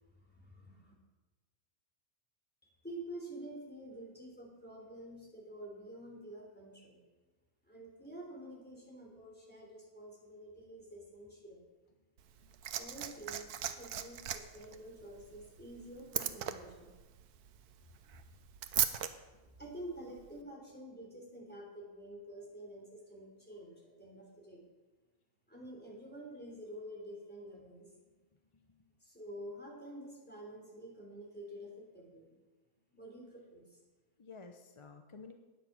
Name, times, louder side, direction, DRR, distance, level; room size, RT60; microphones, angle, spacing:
voice 1, 0.2-0.9 2.8-7.0 7.7-11.6 12.8-17.0 17.8-18.3 19.6-24.7 25.5-27.9 29.0-32.4 32.9-33.8, right 1 dB, 5° left, -2 dB, 3.3 m, -49 dB
Liquid, 12.2-19.1 20.2-20.3, right 10 dB, 75° right, 1.2 m, -38 dB
voice 2, 28.5-28.9 34.2-35.3, left 4 dB, 35° left, 5 dB, 0.5 m, -53 dB
12.0 x 9.2 x 6.0 m, 1.2 s
omnidirectional pair, 1.7 m